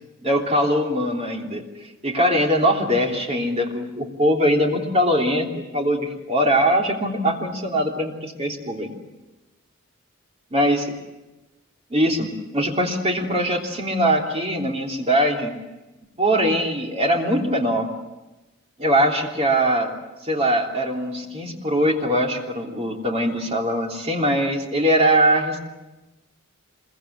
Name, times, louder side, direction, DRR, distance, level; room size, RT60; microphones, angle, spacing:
voice 1, 0.2-1.6 2.0-8.9 10.5-11.0 11.9-15.5 16.2-17.9 18.8-20.0 20.2-25.6, equal, 30° right, 0 dB, 3.3 m, -21 dB
26.0 x 23.0 x 8.2 m, 1.1 s
head